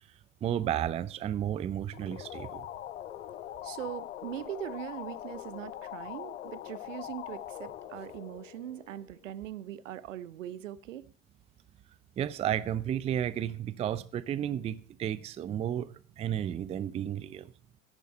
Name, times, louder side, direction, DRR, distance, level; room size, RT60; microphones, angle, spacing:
voice 1, 0.4-2.7 12.2-17.5, right 10 dB, 15° right, 0.5 m, -32 dB
sound 1, 1.9-9.3, left 12 dB, 70° left, 0.9 m, -42 dB
voice 2, 3.6-11.1, right 11 dB, 70° right, 0.9 m, -41 dB
15.0 x 10.5 x 4.3 m
hypercardioid pair, 95°, 39 cm